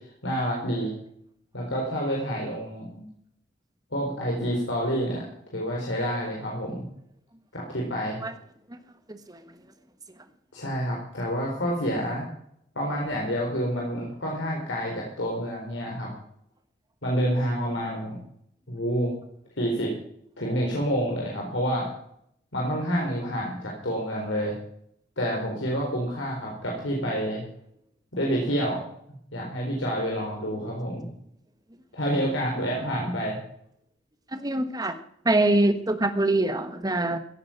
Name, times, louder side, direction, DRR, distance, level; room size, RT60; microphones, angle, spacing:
voice 1, 0.2-0.9 1.5-3.1 3.9-5.2 5.5-6.8 7.5-8.2 10.5-12.3 12.8-16.1 17.0-18.2 18.7-19.1 19.6-19.9 20.4-21.9 22.5-24.6 25.2-27.4 28.1-28.8 29.3-31.1 31.9-33.4, equal, 85° left, -3 dB, 4.4 m, -28 dB
voice 2, 9.1-9.4 34.3-35.0 35.2-37.2, right 2 dB, 20° right, 9 dB, 1.3 m, -24 dB
16.0 x 8.8 x 5.9 m, 0.69 s
head